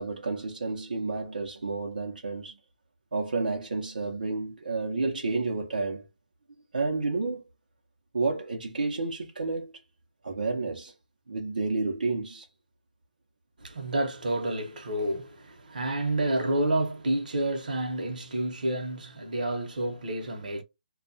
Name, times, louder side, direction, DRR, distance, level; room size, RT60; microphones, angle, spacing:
voice 1, 0.0-2.6 3.1-6.0 6.7-7.4 8.1-9.7 10.2-10.9 11.3-12.5, right 3 dB, 90° right, 0.7 m, -30 dB
voice 2, 13.6-20.6, right 1 dB, 70° right, 0.9 m, -29 dB
2.4 x 2.2 x 2.5 m
hypercardioid pair, 160°, 5 cm